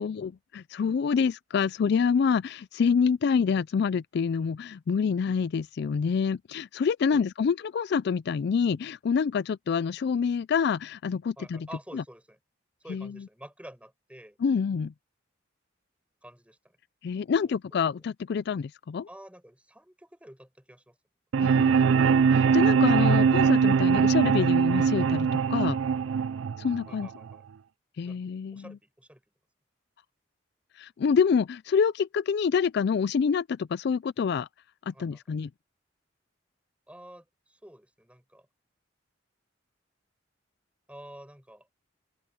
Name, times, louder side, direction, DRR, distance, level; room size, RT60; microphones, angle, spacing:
voice 1, 0.0-11.7 11.9-12.0 12.9-13.2 14.4-14.9 17.0-19.1 21.4-25.8 26.6-27.1 28.0-28.8 30.8-34.5 34.9-35.5, left 6 dB, 60° left, 0.3 m, -27 dB
voice 2, 11.4-12.4 12.8-14.4 16.2-16.8 17.4-17.6 19.1-21.0 26.9-27.4 28.0-29.2 34.9-35.2 36.9-38.5 40.9-41.7, right 1 dB, 5° right, 6.4 m, -49 dB
sound 1, 21.3-27.3, right 6 dB, 85° right, 0.4 m, -22 dB
open air
head